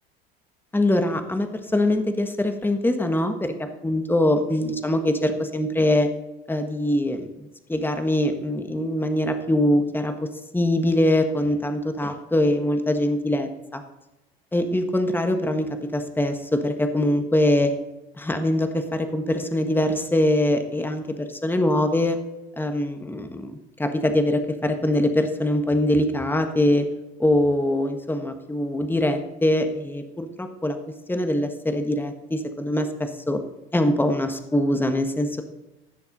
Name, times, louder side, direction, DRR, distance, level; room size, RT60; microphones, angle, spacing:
voice 1, 0.7-3.5 3.8-6.1 6.5-7.3 7.7-13.8 14.5-17.7 18.2-22.2 22.6-26.8 27.2-30.8 31.1-33.4 33.7-35.4, left 1 dB, 5° left, 6 dB, 1.4 m, -23 dB
16.5 x 7.0 x 3.9 m, 0.98 s
hypercardioid pair, 75°, 30 cm